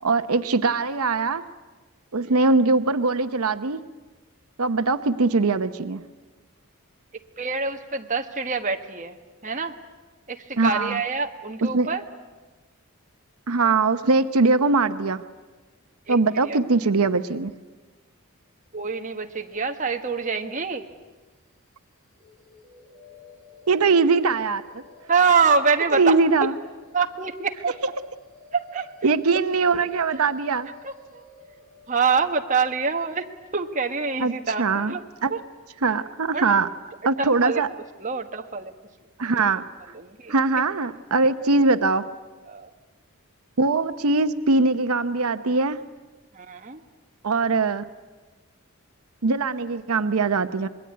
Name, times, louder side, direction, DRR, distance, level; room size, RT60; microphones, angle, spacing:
voice 1, 0.0-1.4 2.1-3.8 4.6-6.0 10.6-11.0 11.7-11.9 13.5-15.2 16.1-17.5 23.7-24.6 25.9-26.5 29.0-30.7 34.2-34.3 34.6-34.9 35.2-35.3 35.8-36.7 37.0-37.7 39.2-39.6 40.3-42.1 43.6-45.8 47.2-47.8 49.2-50.7, right 3 dB, 85° right, 11 dB, 0.8 m, -21 dB
voice 2, 7.4-9.2 9.4-9.7 10.3-12.0 16.1-16.2 16.4-16.6 18.7-20.8 25.1-26.2 26.9-27.7 28.5-28.9 30.1-30.2 30.8-31.2 31.9-33.2 33.5-35.0 35.3-35.4 36.3-36.6 37.2-37.6 38.0-38.7 39.3-39.4 39.9-40.3 42.5-42.7 46.3-46.8, right 5 dB, 35° right, 4 dB, 1.4 m, -25 dB
sound 1, 22.2-36.1, left 2 dB, 15° right, 6.8 m, -51 dB
26.5 x 21.5 x 9.5 m, 1.3 s
head